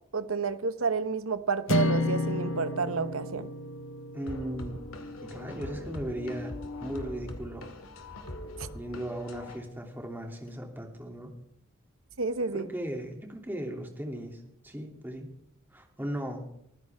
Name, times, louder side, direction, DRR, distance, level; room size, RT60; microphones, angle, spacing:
voice 1, 0.1-3.5 8.6-8.7 12.2-12.7, right 4 dB, 80° right, 11 dB, 1.1 m, -30 dB
sound 1, 1.7-6.0, left 2 dB, 65° left, 1.0 m, -32 dB
voice 2, 4.1-4.8 5.2-6.5 6.8-7.7 8.7-11.3 12.5-15.3 15.7-16.4, equal, 10° right, 2 dB, 2.7 m, -37 dB
sound 2, 4.3-9.6, left 1 dB, 85° left, 2.2 m, -41 dB
22.5 x 15.0 x 3.6 m, 0.78 s
head